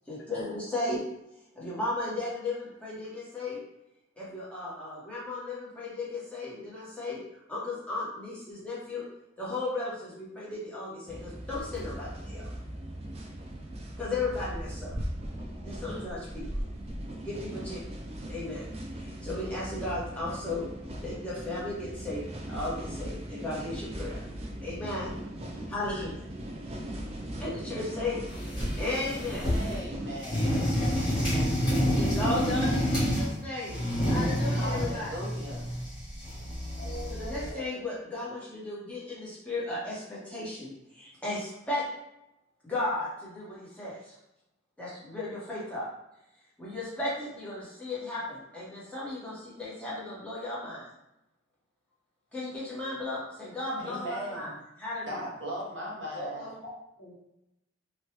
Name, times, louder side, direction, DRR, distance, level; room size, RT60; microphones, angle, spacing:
voice 1, 0.1-1.0 1.5-3.6 4.2-7.2 7.5-9.0 9.4-12.5 14.0-14.9 15.6-16.4 17.2-17.8 18.3-18.7 19.0-20.7 21.0-22.2 22.5-24.2 24.6-25.1 25.7-26.2 27.4-28.2 28.8-29.5 31.9-33.8 34.0-35.1 37.1-41.8 42.6-44.1 44.8-45.8 46.6-50.9 52.3-54.5 54.8-55.2, left 2 dB, 5° left, -8 dB, 1.0 m, -35 dB
sound 1, 11.1-30.2, right 1 dB, 30° right, 0.4 m, -39 dB
sound 2, 28.3-29.8 30.2-33.3 33.7-37.5, equal, 25° left, 1.1 m, -28 dB
voice 2, 29.4-30.5 34.6-35.6 53.8-54.5 55.1-56.4, right 1 dB, 65° right, -4 dB, 0.9 m, -38 dB
voice 3, 36.8-37.7 56.1-56.6 57.0-57.1, left 1 dB, 50° left, -3 dB, 0.7 m, -41 dB
3.0 x 2.2 x 2.8 m, 0.86 s
head